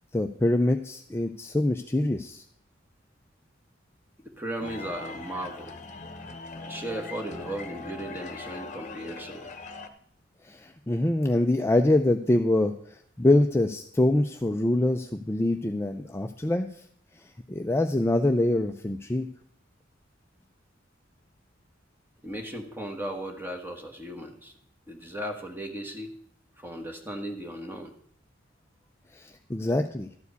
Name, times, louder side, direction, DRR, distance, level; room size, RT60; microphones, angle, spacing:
voice 1, 0.1-2.4 10.4-16.7 17.2-19.3 29.1-30.1, left 1 dB, 15° left, 5 dB, 0.4 m, -25 dB
voice 2, 4.2-5.8 6.6-9.5 22.2-24.5 24.9-26.2 26.6-27.9, right 1 dB, 10° right, 2 dB, 1.4 m, -36 dB
sound 1, 4.6-9.9, left 3 dB, 40° left, 1.0 m, -41 dB
12.5 x 4.8 x 8.1 m, 0.62 s
head